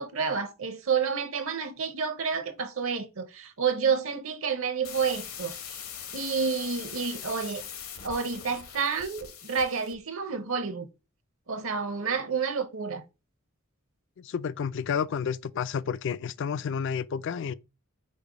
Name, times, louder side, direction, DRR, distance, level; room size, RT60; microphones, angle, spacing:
voice 1, 0.0-5.8 6.1-7.6 8.0-10.9 11.5-13.0, right 6 dB, 70° right, 0.8 m, -29 dB
sound 1, 4.8-10.0, left 8 dB, 75° left, 1.0 m, -41 dB
voice 2, 14.2-17.5, left 7 dB, 55° left, 0.3 m, -30 dB
5.2 x 2.1 x 4.8 m
head